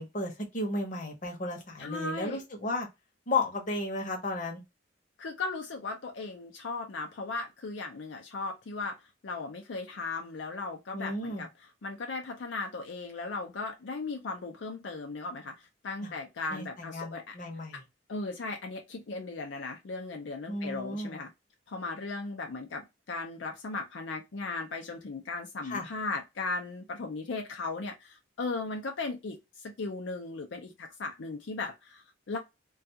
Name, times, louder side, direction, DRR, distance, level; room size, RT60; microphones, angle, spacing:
voice 1, 0.0-2.9 3.3-4.6 10.9-11.5 16.0-16.1 16.5-17.8 20.5-21.1 25.6-25.9, left 2 dB, 45° left, 0.8 m, -34 dB
voice 2, 1.8-2.4 5.2-9.0 9.2-11.5 11.8-17.3 17.7-17.8 18.1-21.3 21.7-32.4, left 3 dB, 75° left, 0.5 m, -37 dB
2.4 x 2.3 x 2.7 m
head